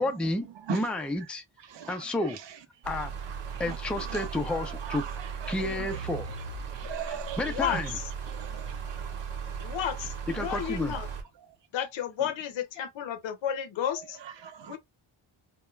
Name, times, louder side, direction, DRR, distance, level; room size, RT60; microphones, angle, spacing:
voice 1, 0.0-1.4 1.9-2.4 2.9-3.1 3.6-5.0 5.5-6.3 7.4-7.9 10.3-10.9, left 2 dB, 5° left, 0.3 m, -30 dB
voice 2, 1.7-2.6 3.3-6.1 6.7-7.8 8.3-9.1 10.5-10.6 14.2-14.8, right 9 dB, 60° right, 0.6 m, -40 dB
sound 1, 2.8-11.2, right 6 dB, 85° right, 1.0 m, -37 dB
voice 3, 7.4-8.1 9.6-11.1 11.7-14.2 14.7-14.8, left 9 dB, 65° left, 0.6 m, -32 dB
2.3 x 2.2 x 3.0 m
wide cardioid pair, 145°, 50 cm